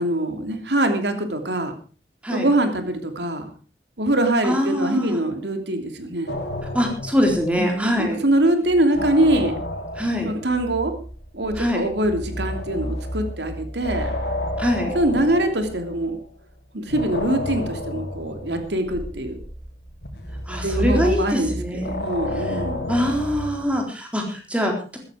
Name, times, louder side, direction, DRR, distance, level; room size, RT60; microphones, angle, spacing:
voice 1, 0.0-1.7 2.3-3.5 4.0-6.4 7.6-9.6 10.2-10.9 11.3-14.1 14.9-16.2 16.7-19.4 20.6-22.9, right 1 dB, 85° right, 7 dB, 2.9 m, -23 dB
voice 2, 4.4-5.2 6.7-8.2 10.0-10.3 11.6-11.9 14.6-14.9 20.5-22.0 22.4-22.6 22.9-25.0, equal, 5° right, 2 dB, 3.9 m, -23 dB
sound 1, 6.3-8.1 8.4-16.3 16.9-23.7, left 1 dB, 70° left, 3.7 m, -31 dB
15.5 x 14.0 x 5.0 m, 0.38 s
head